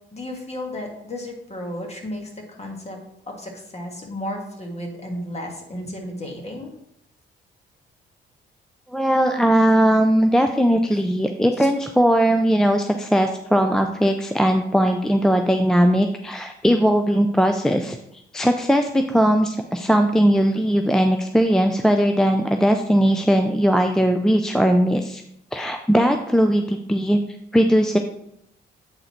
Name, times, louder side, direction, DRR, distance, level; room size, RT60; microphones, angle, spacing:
voice 1, 0.1-3.0 3.3-6.7 11.6-11.7, left 1 dB, 35° left, 1 dB, 1.8 m, -33 dB
voice 2, 8.9-18.0 18.3-25.2 25.5-27.2 27.5-28.0, equal, 5° left, 5 dB, 0.4 m, -19 dB
8.0 x 3.8 x 4.4 m, 0.76 s
cardioid pair, 90°, 20 cm